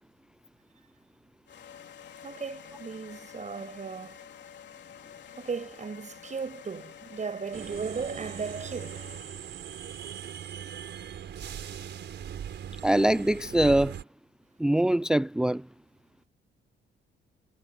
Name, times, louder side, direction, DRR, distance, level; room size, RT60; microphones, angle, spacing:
sound 1, 1.5-9.6, left 8 dB, 60° left, 3.6 m, -49 dB
voice 1, 2.2-4.2 5.4-9.1, right 5 dB, 35° right, 8.0 m, -36 dB
sound 2, 7.5-14.0, right 9 dB, 65° right, 4.8 m, -40 dB
voice 2, 12.8-14.0 14.6-15.6, right 1 dB, 5° right, 0.5 m, -23 dB
cardioid pair, 90°, 20 cm